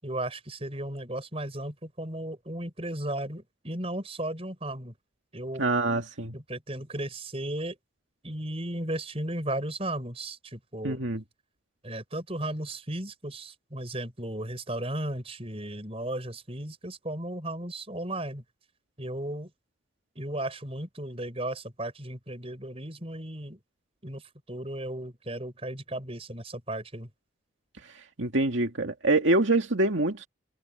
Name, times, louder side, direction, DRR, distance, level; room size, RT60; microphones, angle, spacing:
voice 1, 0.0-4.9 5.3-5.6 6.3-7.8 8.2-11.0 11.8-18.4 19.0-19.5 20.2-23.6 24.0-24.2 24.5-27.1, right 1 dB, 30° right, 5.9 m, -35 dB
voice 2, 5.6-6.3 10.8-11.2 28.2-30.3, right 2 dB, 75° right, 2.2 m, -25 dB
head